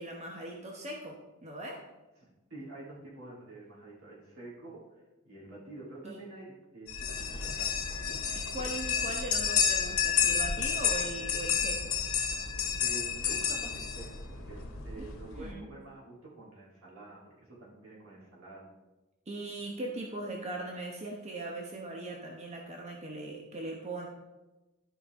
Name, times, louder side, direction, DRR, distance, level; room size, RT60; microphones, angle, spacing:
voice 1, 0.0-1.8 6.0-6.2 8.3-11.9 14.9-15.7 19.3-24.1, right 2 dB, 30° right, 0 dB, 1.0 m, -40 dB
voice 2, 2.5-4.8 5.2-8.0 12.8-18.7, right 2 dB, 75° right, -5 dB, 3.2 m, -48 dB
sound 1, 6.9-15.5, left 7 dB, 80° left, 1.4 m, -31 dB
13.0 x 5.3 x 3.6 m, 1.1 s
head